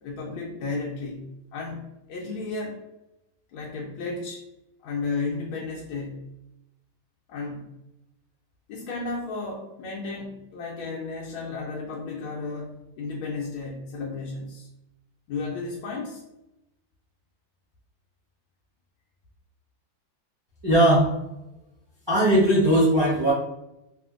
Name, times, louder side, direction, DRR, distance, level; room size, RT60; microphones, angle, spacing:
voice 1, 0.0-1.2 1.5-2.8 3.5-4.5 4.8-6.3 7.3-7.7 8.7-14.7 15.3-16.2, left 3 dB, 80° left, -3 dB, 1.4 m, -33 dB
voice 2, 20.6-21.1 22.1-23.3, right 1 dB, 25° right, -9 dB, 0.6 m, -19 dB
3.4 x 2.4 x 2.4 m, 0.92 s
omnidirectional pair, 2.2 m